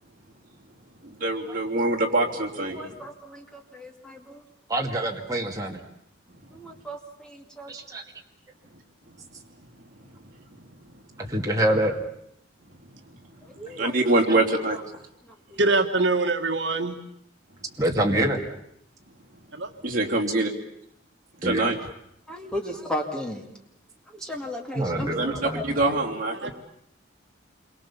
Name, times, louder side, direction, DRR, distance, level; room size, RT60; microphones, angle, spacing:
voice 1, 1.0-3.1 6.3-6.8 8.7-11.2 12.7-15.1 19.3-20.5 21.4-21.8 25.0-26.5, right 2 dB, 45° right, -1 dB, 3.4 m, -27 dB
voice 2, 2.8-4.4 6.5-7.7 13.5-13.9 15.5-15.6 22.3-23.4 24.1-25.6, left 1 dB, 5° left, 2 dB, 2.4 m, -35 dB
voice 3, 4.7-5.8 7.7-8.0 11.2-12.0 17.8-18.4 21.4-21.7 24.7-25.6, right 1 dB, 15° right, 0 dB, 2.3 m, -25 dB
voice 4, 15.6-17.0 19.5-19.7 26.4-26.5, right 2 dB, 70° right, 5 dB, 1.6 m, -23 dB
28.0 x 23.0 x 7.2 m, 0.75 s
head